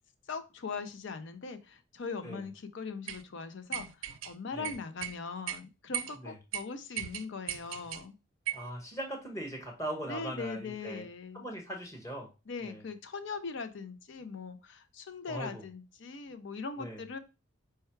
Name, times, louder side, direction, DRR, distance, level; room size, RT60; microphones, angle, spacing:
voice 1, 0.3-8.1 10.1-11.5 12.5-17.2, left 4 dB, 60° left, 10 dB, 0.5 m, -40 dB
sound 1, 3.1-3.2 3.7-4.3 4.6-5.2 5.5-5.6 5.9-6.2 6.5-6.6 7.0-8.0 8.5-8.7, right 11 dB, 70° right, 0.4 m, -37 dB
voice 2, 8.5-11.1 11.3-12.3 12.6-12.8 15.3-15.6 16.8-17.0, right 1 dB, 15° left, 0 dB, 1.1 m, -40 dB
4.5 x 2.3 x 4.5 m, 0.30 s
head